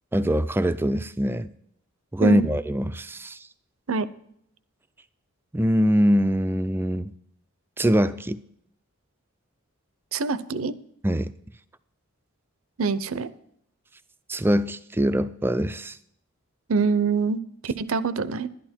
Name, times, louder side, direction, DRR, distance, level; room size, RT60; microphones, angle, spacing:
voice 1, 0.1-1.5 2.1-3.5 5.5-7.1 7.8-8.4 11.0-11.3 14.3-16.0, equal, 10° right, 13 dB, 0.4 m, -23 dB
voice 2, 10.1-10.7 12.8-13.3 16.7-18.5, right 4 dB, 70° right, 16 dB, 0.6 m, -25 dB
11.5 x 11.0 x 4.4 m, 0.70 s
head